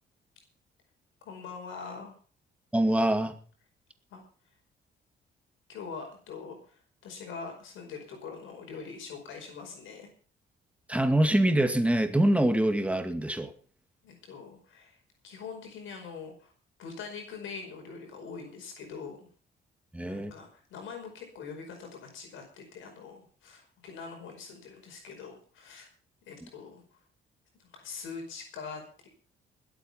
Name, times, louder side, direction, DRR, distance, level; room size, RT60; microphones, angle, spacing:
voice 1, 1.2-2.1 4.1-4.2 5.7-10.1 14.0-15.0 15.2-16.5 16.8-19.3 20.0-25.9 26.2-26.8 27.6-29.1, left 5 dB, 80° left, 2 dB, 5.1 m, -43 dB
voice 2, 2.7-3.3 10.9-13.5 19.9-20.3, right 1 dB, 5° right, 7 dB, 2.3 m, -24 dB
20.5 x 8.4 x 5.8 m, 0.42 s
cardioid pair, 90°, 20 cm